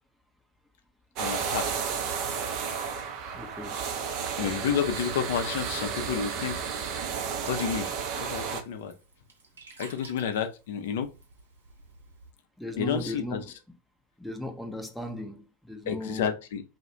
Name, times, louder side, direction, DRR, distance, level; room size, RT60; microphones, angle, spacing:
voice 1, 1.2-1.7 4.4-6.6 7.5-7.9 8.3-8.9 9.8-11.1 12.8-13.4 15.9-16.6, left 8 dB, 60° left, 0.4 m, -30 dB
sound 1, 1.2-8.6, right 6 dB, 45° right, 0.5 m, -32 dB
voice 2, 3.3-3.8 8.4-8.5 12.6-13.8 14.2-16.4, left 2 dB, ahead, 0.6 m, -37 dB
Sink (filling or washing), 6.6-12.3, right 4 dB, 75° right, 0.8 m, -52 dB
2.3 x 2.1 x 2.8 m
figure-of-eight pair, 85°, 0 cm